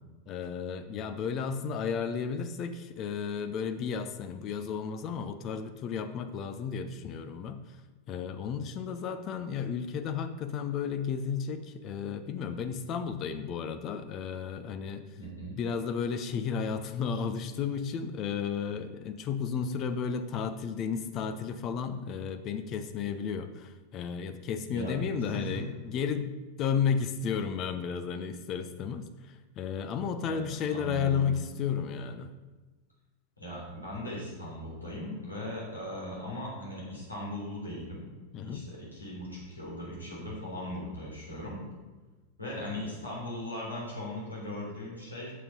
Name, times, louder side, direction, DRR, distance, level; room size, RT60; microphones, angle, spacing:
voice 1, 0.3-7.6 8.1-15.1 15.6-26.3 26.6-29.1 29.6-32.3 38.3-38.6, left 6 dB, 35° left, 9 dB, 0.7 m, -33 dB
voice 2, 15.2-15.5 24.7-24.9 25.3-25.6 30.2-30.4 30.7-31.3 33.4-38.0 38.4-41.6 42.4-45.3, left 1 dB, 85° left, -5 dB, 3.6 m, -38 dB
8.4 x 7.1 x 5.3 m, 1.3 s
figure-of-eight pair, 90°, 0 cm